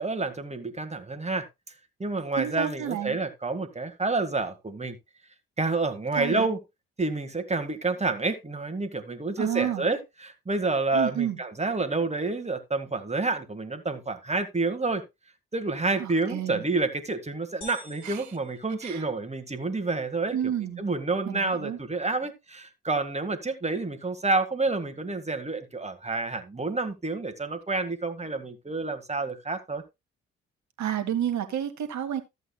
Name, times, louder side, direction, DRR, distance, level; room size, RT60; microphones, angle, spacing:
voice 1, 0.0-1.5 2.0-5.0 5.6-6.6 7.0-15.0 15.5-20.4 20.8-29.8, right 3 dB, 20° right, 1.8 m, -29 dB
voice 2, 2.4-3.2 6.1-6.5 9.4-9.9 10.9-11.4 16.0-16.6 18.0-18.3 18.8-19.0 20.3-20.8 21.2-21.8 30.8-32.2, right 10 dB, 60° right, 1.7 m, -30 dB
sound 1, 17.6-19.6, left 1 dB, 75° left, 3.4 m, -48 dB
14.0 x 8.1 x 2.3 m
hypercardioid pair, 45°, 33 cm